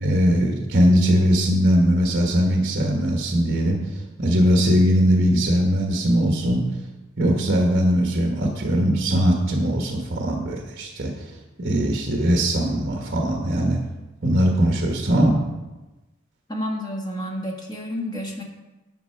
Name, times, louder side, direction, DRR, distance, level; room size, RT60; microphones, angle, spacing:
voice 1, 0.0-6.6 7.2-11.3 11.6-13.8 14.2-15.3, equal, 50° right, 1 dB, 1.4 m, -20 dB
voice 2, 16.5-18.4, equal, 20° left, -1 dB, 1.6 m, -30 dB
12.5 x 7.5 x 4.6 m, 1.1 s
head